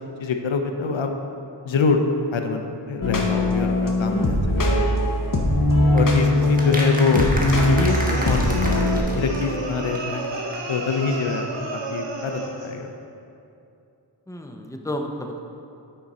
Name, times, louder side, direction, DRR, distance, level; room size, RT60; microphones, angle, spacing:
voice 1, 0.2-1.1 1.7-2.0 2.3-4.8 5.9-7.3 7.7-10.2 10.7-11.5 11.7-12.9, left 4 dB, 90° left, 5 dB, 0.7 m, -25 dB
sound 1, 3.0-9.0, left 1 dB, 45° left, 1.0 m, -20 dB
sound 2, 6.0-9.7 9.9-10.0 10.2-10.3 10.5-10.6, right 1 dB, 20° right, 1.3 m, -31 dB
sound 3, 7.9-12.8, right 2 dB, 70° right, 1.2 m, -32 dB
voice 2, 14.3-15.4, left 1 dB, 5° left, 3 dB, 0.7 m, -32 dB
8.9 x 5.1 x 4.2 m, 2.6 s
wide cardioid pair, 45°, 45 cm